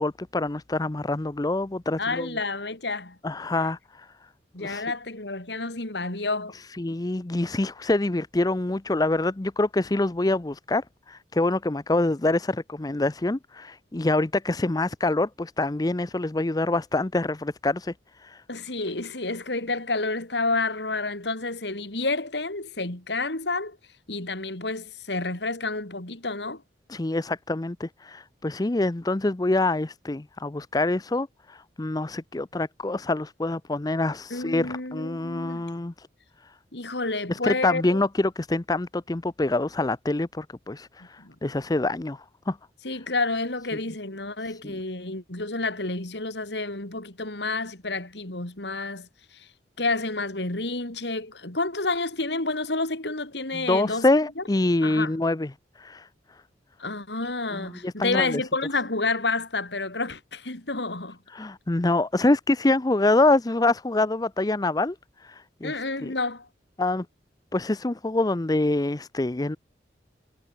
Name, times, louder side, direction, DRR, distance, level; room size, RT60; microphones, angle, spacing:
voice 1, 0.0-2.3 3.2-4.1 4.6-4.9 6.5-18.4 26.9-36.1 37.3-42.6 44.5-44.8 53.5-55.5 55.8-56.1 57.5-58.4 61.3-66.1 66.8-67.1 67.5-69.6, left 2 dB, 20° left, 0.6 m, -26 dB
voice 2, 2.0-3.2 4.5-6.5 18.5-23.8 24.1-26.6 34.3-35.6 36.7-38.0 41.2-41.4 42.8-49.5 49.8-54.1 54.4-54.5 54.8-55.1 56.8-61.2 65.6-66.5, left 3 dB, 75° left, 3.6 m, -29 dB
head